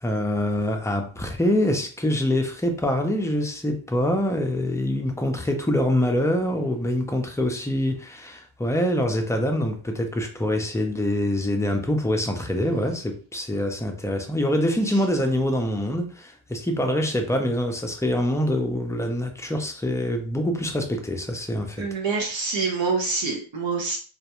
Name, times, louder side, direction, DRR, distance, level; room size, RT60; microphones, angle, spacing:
voice 1, 0.0-21.9, left 1 dB, 5° left, 0.4 m, -25 dB
voice 2, 21.8-24.0, right 4 dB, 70° right, 0.6 m, -26 dB
2.3 x 2.1 x 2.9 m
wide cardioid pair, 95°, 48 cm